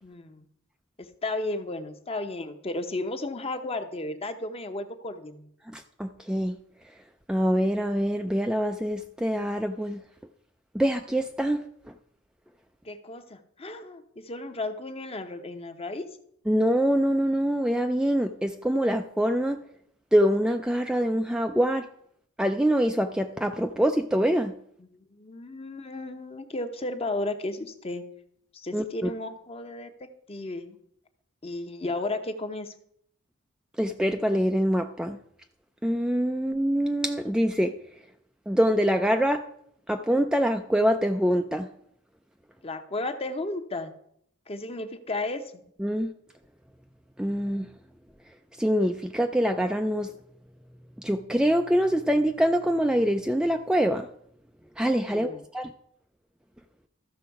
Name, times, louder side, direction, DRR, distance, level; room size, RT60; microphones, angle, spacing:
voice 1, 0.0-0.4 1.0-5.5 12.8-16.1 24.8-28.0 28.5-30.8 31.4-32.7 42.6-43.9 44.5-45.4 55.1-55.4, left 2 dB, 30° left, 0.8 m, -34 dB
voice 2, 5.7-6.6 7.3-10.0 10.7-11.6 16.5-19.6 20.1-21.9 22.4-24.5 28.7-29.1 33.8-35.2 35.8-37.7 38.5-39.4 39.9-41.7 45.8-46.1 47.2-47.7 48.6-50.1 51.0-54.1 54.8-55.7, equal, 5° right, 0.3 m, -24 dB
13.5 x 6.1 x 4.7 m
head